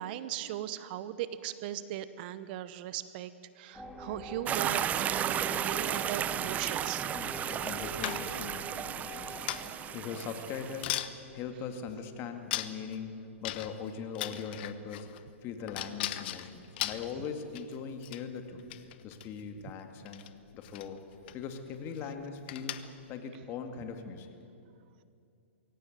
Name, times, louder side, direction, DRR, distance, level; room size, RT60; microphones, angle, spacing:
voice 1, 0.0-3.3 3.6-7.1, right 12 dB, 45° right, 14 dB, 0.9 m, -38 dB
sound 1, 3.7-9.7, left 1 dB, 5° left, 3.0 m, -44 dB
sound 2, 4.5-10.8, right 10 dB, 20° right, 0.5 m, -34 dB
voice 2, 7.1-15.1 15.4-20.3 20.5-21.0 21.3-22.8 23.1-24.3, left 6 dB, 35° left, 6 dB, 2.3 m, -41 dB
sound 3, 8.0-8.5 9.5-9.9 10.4-10.5 10.8-11.1 11.9-12.0 12.5-13.0 13.4-13.9 14.1-15.2 15.7-17.8 18.0-18.2 18.6-19.3 20.1-20.3 20.6-20.9 21.3-21.4 21.7-22.0 22.5-23.0, left 14 dB, 50° left, 1.1 m, -37 dB
22.0 x 17.0 x 9.3 m, 2.6 s
hypercardioid pair, 125°, 7 cm